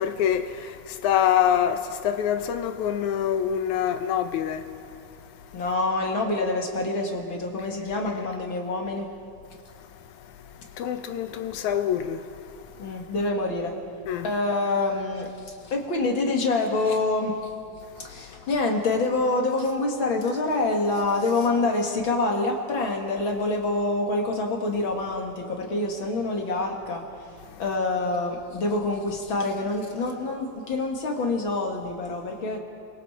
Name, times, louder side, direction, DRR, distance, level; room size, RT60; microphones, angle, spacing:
voice 1, 0.0-4.6 10.8-12.2 14.1-14.2, left 9 dB, 70° left, 2.2 m, -25 dB
voice 2, 5.5-9.1 12.8-13.7 14.2-17.4 18.0-27.0 27.6-32.6, left 2 dB, 40° left, 2.4 m, -26 dB
28.5 x 23.5 x 4.4 m
omnidirectional pair, 3.9 m